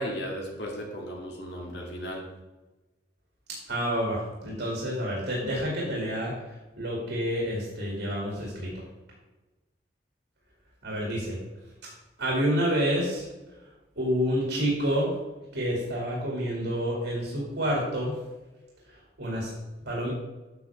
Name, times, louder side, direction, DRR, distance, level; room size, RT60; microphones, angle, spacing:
voice 1, 0.0-2.2, equal, 80° left, -1 dB, 2.1 m, -35 dB
voice 2, 3.7-8.7 10.8-11.4 12.2-13.2 14.0-15.1 15.5-18.2 19.2-19.5 19.9-20.1, equal, 85° right, -3 dB, 2.4 m, -28 dB
9.4 x 6.0 x 3.5 m, 1.1 s
head